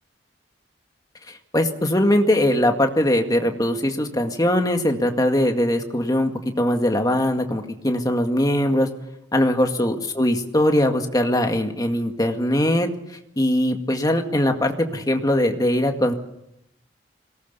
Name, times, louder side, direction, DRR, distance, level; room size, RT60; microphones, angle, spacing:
voice 1, 1.5-6.3 6.6-8.9 9.3-12.9 13.4-16.1, left 1 dB, 20° left, 4 dB, 2.0 m, -21 dB
22.0 x 18.5 x 6.9 m, 0.81 s
head